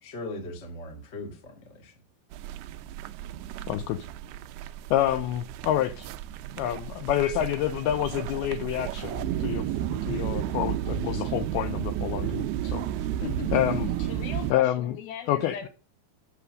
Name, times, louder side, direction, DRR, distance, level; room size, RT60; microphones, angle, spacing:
voice 1, 0.0-1.9 13.2-13.6, left 3 dB, 45° left, 0.8 m, -38 dB
sound 1, 2.3-14.5, right 11 dB, 80° right, 2.4 m, -32 dB
voice 2, 3.7-4.1 4.9-6.1 6.6-12.9 13.5-13.9 14.5-15.0 15.3-15.7, left 12 dB, 85° left, 2.2 m, -28 dB
voice 3, 14.1-15.7, left 8 dB, 70° left, 2.8 m, -39 dB
8.4 x 6.9 x 6.3 m
omnidirectional pair, 5.1 m